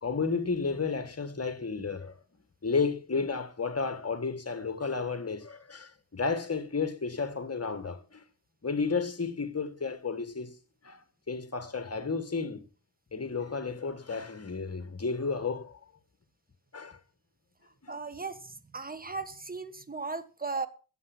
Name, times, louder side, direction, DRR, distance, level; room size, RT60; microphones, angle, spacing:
voice 1, 0.0-2.1 2.6-8.2 8.6-10.6 10.8-11.0 11.3-12.6 13.1-15.8 16.7-17.0 17.8-17.9, left 4 dB, 35° left, 1.9 m, -32 dB
voice 2, 17.9-20.7, right 4 dB, 20° right, 1.5 m, -37 dB
13.0 x 8.2 x 6.3 m
cardioid pair, 70°, 40 cm